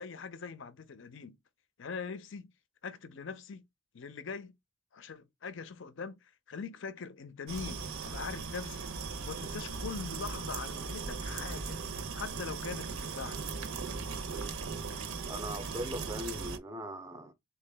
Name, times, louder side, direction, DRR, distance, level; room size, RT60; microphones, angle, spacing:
voice 1, 0.0-1.4 1.8-2.5 2.8-3.6 3.9-4.6 4.9-11.8 12.2-13.4, left 5 dB, 55° left, 0.5 m, -42 dB
sound 1, 7.5-16.6, right 4 dB, 80° right, 0.7 m, -38 dB
voice 2, 15.2-17.3, equal, 15° right, 0.5 m, -40 dB
3.7 x 2.3 x 3.3 m
head